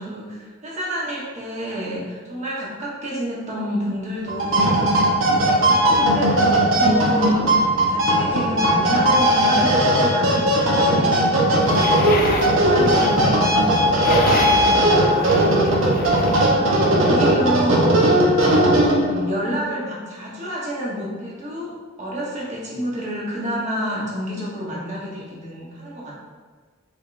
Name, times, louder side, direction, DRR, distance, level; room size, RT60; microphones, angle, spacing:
voice 1, 0.0-4.8 5.6-11.6 12.5-13.4 14.0-18.2 18.6-21.7 22.0-26.2, equal, 35° right, -4 dB, 1.0 m, -29 dB
sound 1, 4.3-19.3, right 1 dB, 75° right, 0.8 m, -18 dB
sound 2, 11.6-16.4, left 2 dB, 45° left, 0.5 m, -28 dB
5.1 x 3.3 x 2.5 m, 1.5 s
head